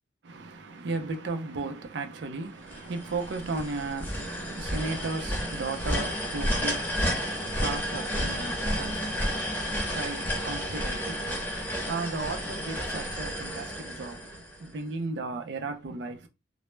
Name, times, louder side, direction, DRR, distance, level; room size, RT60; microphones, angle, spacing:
voice 1, 0.2-16.3, right 3 dB, 70° right, 0.4 m, -36 dB
sound 1, 2.7-14.8, equal, 10° left, 0.6 m, -31 dB
2.1 x 2.0 x 3.0 m
head